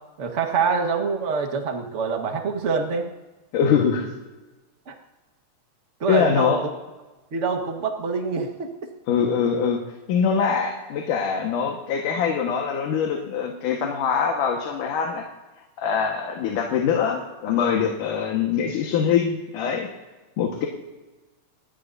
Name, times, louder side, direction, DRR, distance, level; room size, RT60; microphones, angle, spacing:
voice 1, 0.2-3.1 4.9-5.0 6.0-6.7 7.3-8.7, right 5 dB, 50° right, 3 dB, 0.8 m, -25 dB
voice 2, 3.5-4.1 6.1-6.6 9.1-9.8 10.1-15.2 15.8-19.9 20.4-20.7, left 7 dB, 70° left, 1 dB, 3.0 m, -23 dB
26.0 x 19.5 x 2.7 m, 1.2 s
omnidirectional pair, 3.9 m